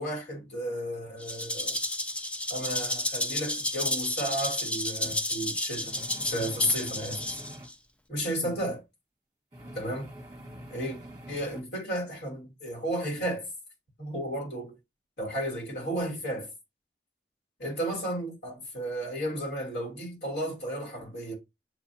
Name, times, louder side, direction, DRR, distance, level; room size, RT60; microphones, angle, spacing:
voice 1, 0.0-1.8 2.5-7.3 8.1-8.8 9.7-10.1 10.7-11.0 11.3-13.5 14.0-14.7 15.2-16.5 17.6-21.3, equal, 70° left, 2.4 m, -33 dB
Rattle (instrument), 1.2-7.7, left 1 dB, 5° left, 0.4 m, -32 dB
sound 1, 5.0-5.2 5.9-7.7 8.4-8.8 9.5-11.6, equal, 20° right, 1.3 m, -45 dB
7.5 x 2.6 x 2.6 m
head